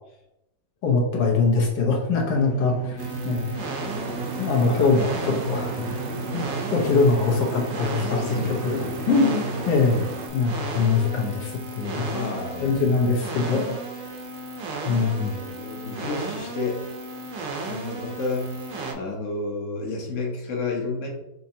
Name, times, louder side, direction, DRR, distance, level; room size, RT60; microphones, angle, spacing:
voice 1, 0.8-3.5 4.4-6.1 6.3-8.2 8.6-10.1 10.3-12.1 12.6-13.8 14.8-15.4, left 4 dB, 75° left, 0 dB, 1.6 m, -23 dB
sound 1, 2.3-9.9, right 2 dB, 10° right, 0.6 m, -34 dB
sound 2, 3.0-18.9, right 3 dB, 60° right, 0.8 m, -35 dB
sound 3, 3.9-10.3, right 4 dB, 80° right, 1.4 m, -36 dB
voice 2, 8.1-8.6 12.1-12.9 14.9-16.9 17.6-21.1, left 3 dB, 55° left, 1 dB, 1.0 m, -31 dB
5.8 x 2.9 x 2.7 m, 0.86 s
omnidirectional pair, 2.0 m